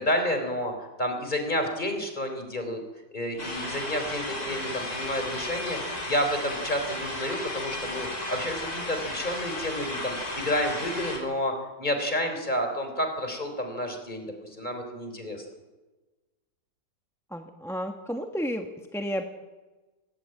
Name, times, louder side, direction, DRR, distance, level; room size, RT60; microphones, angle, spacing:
voice 1, 0.0-2.8 3.1-15.5, left 1 dB, 25° left, 5 dB, 3.8 m, -30 dB
sound 1, 3.4-11.2, left 1 dB, 55° left, 5.0 m, -34 dB
voice 2, 17.3-19.2, equal, ahead, 4 dB, 1.2 m, -32 dB
19.0 x 17.5 x 8.7 m, 1.2 s
omnidirectional pair, 1.9 m